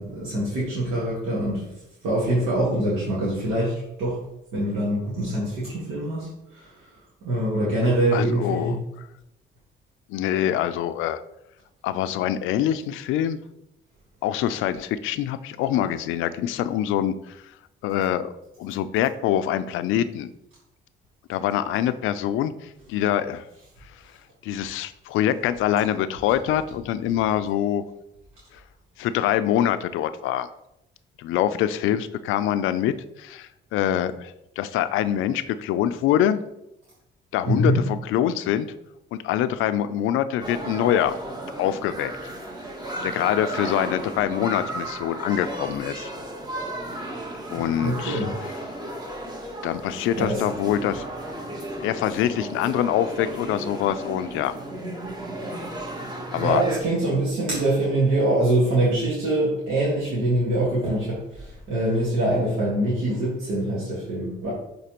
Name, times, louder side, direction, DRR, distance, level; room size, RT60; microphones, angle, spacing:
voice 1, 0.0-1.6 2.0-4.2 4.5-6.9 7.2-8.8 37.4-37.8 47.5-48.3 50.1-50.9 56.4-64.5, right 1 dB, 90° right, -7 dB, 1.7 m, -24 dB
voice 2, 8.1-9.1 10.1-11.2 11.8-13.4 14.2-17.4 17.8-18.3 18.6-20.3 21.3-23.4 24.4-27.8 29.0-30.5 31.2-36.4 37.3-38.7 39.1-41.2 41.6-42.1 43.0-46.1 47.5-48.3 49.6-51.0 51.8-54.5 56.3-56.6, left 11 dB, 90° left, 12 dB, 0.4 m, -25 dB
sound 1, 40.4-56.8, right 1 dB, 20° right, 1.1 m, -34 dB
8.2 x 3.9 x 2.9 m, 0.85 s
cardioid pair, 90°, 20 cm